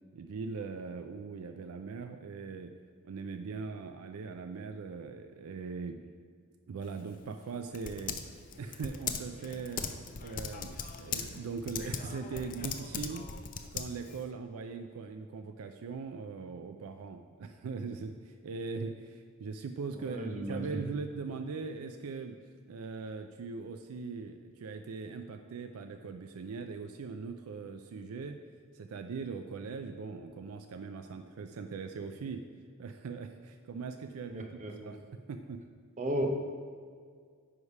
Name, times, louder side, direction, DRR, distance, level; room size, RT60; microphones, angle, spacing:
voice 1, 0.1-2.7 3.0-6.1 6.7-8.2 8.6-9.9 10.2-13.3 13.7-22.4 22.7-28.4 28.7-32.4 32.8-35.0 35.3-35.6, right 4 dB, 70° right, 6 dB, 0.4 m, -40 dB
Typing, 6.8-14.3, left 6 dB, 40° left, 0.4 m, -40 dB
voice 2, 20.1-20.8 34.3-35.0 36.0-36.3, right 1 dB, 35° right, 3 dB, 0.7 m, -34 dB
9.5 x 3.3 x 5.4 m, 2.1 s
head